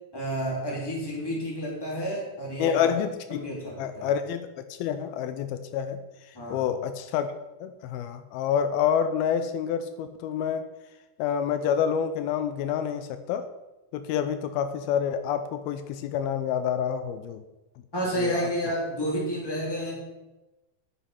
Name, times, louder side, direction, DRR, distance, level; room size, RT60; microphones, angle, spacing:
voice 1, 0.1-2.9 3.3-4.1 6.3-6.6 17.9-20.0, equal, 5° left, -3 dB, 2.6 m, -30 dB
voice 2, 2.6-3.5 3.8-6.0 6.5-10.7 11.2-13.5 13.9-17.4 18.2-18.3, left 8 dB, 85° left, 9 dB, 2.5 m, -28 dB
9.9 x 8.6 x 5.7 m, 1.0 s
omnidirectional pair, 4.5 m